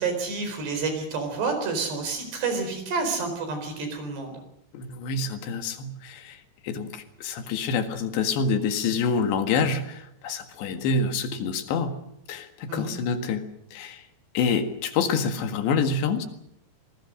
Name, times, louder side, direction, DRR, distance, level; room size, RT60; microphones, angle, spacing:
voice 1, 0.0-4.3 12.7-12.9, right 4 dB, 70° right, 6 dB, 6.5 m, -29 dB
voice 2, 4.7-6.4 6.6-12.0 12.3-13.5 13.7-14.0 14.4-16.3, left 5 dB, 80° left, 7 dB, 4.0 m, -27 dB
26.0 x 20.0 x 6.4 m, 0.75 s
omnidirectional pair, 5.0 m